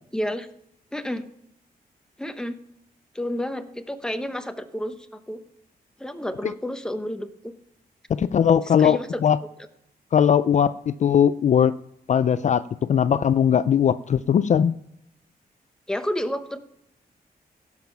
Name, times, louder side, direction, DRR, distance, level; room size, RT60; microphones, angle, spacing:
voice 1, 0.1-0.5 0.9-1.2 2.2-2.5 3.1-4.9 5.3-5.4 6.0-7.5 8.8-9.2 15.9-16.6, equal, 5° left, 9 dB, 0.9 m, -30 dB
voice 2, 8.1-9.4 10.1-11.8 12.1-12.6 12.9-14.7, left 8 dB, 50° left, 14 dB, 0.4 m, -19 dB
16.5 x 7.3 x 5.7 m, 0.77 s
wide cardioid pair, 150°, 16 cm